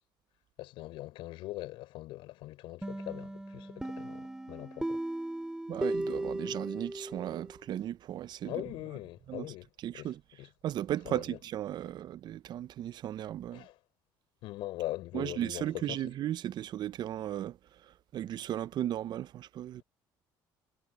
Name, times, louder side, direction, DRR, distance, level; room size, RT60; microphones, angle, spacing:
voice 1, 0.6-5.0 8.4-9.7 9.9-10.1 10.4-10.5 11.1-11.4 13.5-13.8 14.4-16.0, left 17 dB, 80° left, 5.3 m, -41 dB
sound 1, 2.8-7.5, right 1 dB, 5° right, 2.2 m, -37 dB
voice 2, 5.7-8.6 9.3-9.5 9.8-10.2 10.6-13.7 15.1-17.6 18.1-19.8, right 12 dB, 55° right, 0.6 m, -36 dB
cardioid pair, 95°, 9 cm